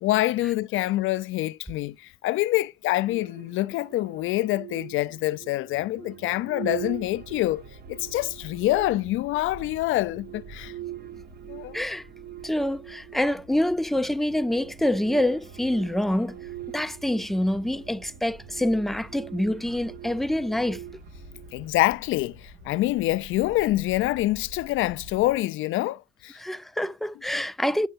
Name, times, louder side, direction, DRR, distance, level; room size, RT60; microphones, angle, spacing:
voice 1, 0.0-7.6 7.9-10.7 11.5-11.8 21.5-26.4, left 17 dB, 85° left, 0.4 m, -26 dB
sound 1, 3.0-21.9, right 13 dB, 55° right, 0.8 m, -43 dB
sound 2, 6.7-25.4, equal, 80° right, 2.3 m, -49 dB
voice 2, 12.4-16.4 16.7-20.8 26.4-27.9, left 1 dB, ahead, 0.4 m, -26 dB
8.9 x 5.5 x 2.4 m
cardioid pair, 90°, 20 cm